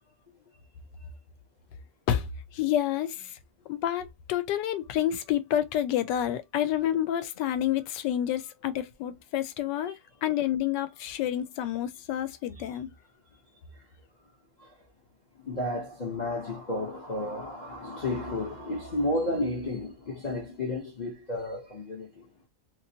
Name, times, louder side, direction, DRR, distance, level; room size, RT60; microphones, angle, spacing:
voice 1, 2.1-3.4 3.7-12.9, left 11 dB, 80° left, 1.2 m, -29 dB
voice 2, 15.4-22.3, left 1 dB, 50° left, 0.5 m, -32 dB
2.9 x 2.9 x 2.7 m
omnidirectional pair, 1.9 m